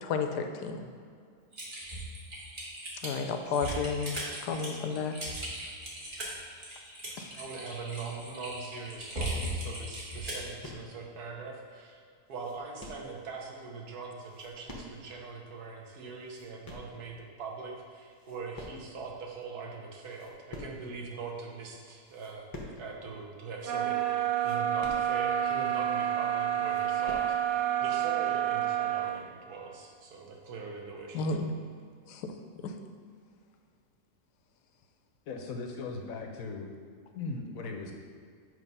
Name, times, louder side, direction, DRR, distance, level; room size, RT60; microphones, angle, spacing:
voice 1, 0.0-0.9 3.0-4.2 4.4-5.1 7.2-7.3 31.1-31.5 32.1-32.3, left 5 dB, 85° left, 6 dB, 1.2 m, -32 dB
Typing, 1.5-10.5, right 1 dB, 35° right, 1.4 m, -38 dB
voice 2, 7.3-12.0 12.3-22.5 22.8-31.4, right 4 dB, 70° right, 0 dB, 1.4 m, -42 dB
sound 1, 10.6-11.1 11.6-11.7 12.0-13.2 14.1-15.2 15.5-15.6 16.0-17.0 17.6-17.8 18.1-19.1 19.4-19.5 19.9-21.0 21.5-21.6 22.0-22.9 23.2-23.3 23.6-23.7 24.2-25.5 26.0-26.1 26.4-27.4, left 1 dB, 20° left, 0.5 m, -47 dB
sound 2, 23.6-29.2, right 10 dB, 90° right, 1.3 m, -29 dB
voice 3, 35.3-36.7 37.1-37.9, left 3 dB, 65° left, 3 dB, 1.0 m, -38 dB
7.6 x 3.1 x 5.3 m, 2.2 s
omnidirectional pair, 1.7 m